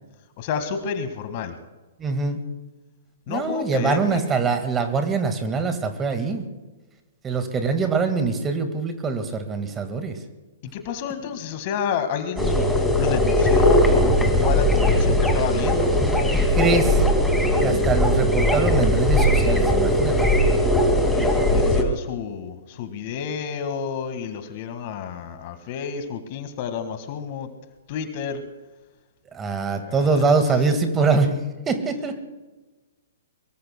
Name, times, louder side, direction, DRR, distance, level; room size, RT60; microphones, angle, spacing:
voice 1, 0.4-1.5 3.3-4.2 10.7-16.7 17.6-17.8 20.9-27.5 27.9-28.4 29.8-30.2, left 7 dB, 45° left, 8 dB, 1.7 m, -30 dB
voice 2, 2.0-2.4 3.3-6.4 7.2-10.1 16.3-17.0 17.6-20.3 29.3-31.3 31.7-32.1, right 4 dB, 20° right, 7 dB, 1.7 m, -23 dB
sound 1, 12.4-21.8, left 1 dB, ahead, 2.2 m, -19 dB
23.5 x 22.0 x 2.2 m, 1.2 s
figure-of-eight pair, 120°, 0 cm